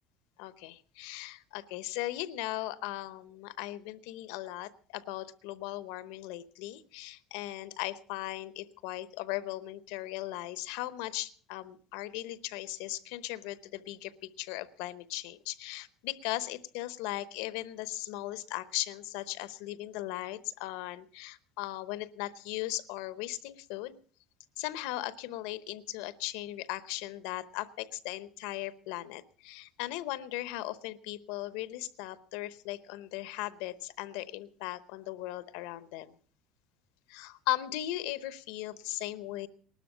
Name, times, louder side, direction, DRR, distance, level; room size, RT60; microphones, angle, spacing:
voice 1, 0.4-24.0 24.6-36.1 37.1-39.5, left 16 dB, 80° left, 16 dB, 0.9 m, -38 dB
19.0 x 12.5 x 5.0 m, 0.43 s
cardioid pair, 165°, 0 cm